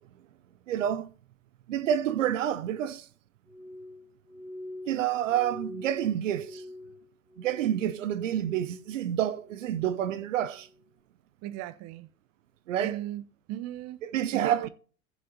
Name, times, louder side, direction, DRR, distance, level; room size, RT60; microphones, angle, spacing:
voice 1, 0.7-1.1 1.7-3.1 4.9-6.6 7.4-10.7 12.7-13.0 14.0-14.7, right 10 dB, 70° right, 0.7 m, -28 dB
Glass, 3.5-8.1 8.3-9.0 9.4-9.9 10.5-10.8, left 1 dB, 5° right, 2.5 m, -45 dB
voice 2, 11.4-12.1 12.8-14.0 14.3-14.7, right 13 dB, 40° right, 0.8 m, -36 dB
15.5 x 7.3 x 2.9 m
figure-of-eight pair, 85°, 39 cm